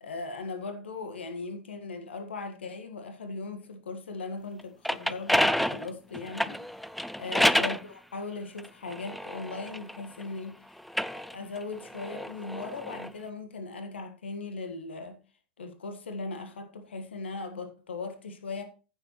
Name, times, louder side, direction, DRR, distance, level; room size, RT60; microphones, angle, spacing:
voice 1, 0.0-6.9 7.2-10.8 11.1-15.2 15.6-18.6, left 3 dB, 65° left, 1.6 m, -38 dB
sound 1, 4.6-7.8 8.6-10.3 10.8-13.1, equal, ahead, 0.4 m, -29 dB
15.0 x 6.8 x 3.1 m
figure-of-eight pair, 95°, 6 cm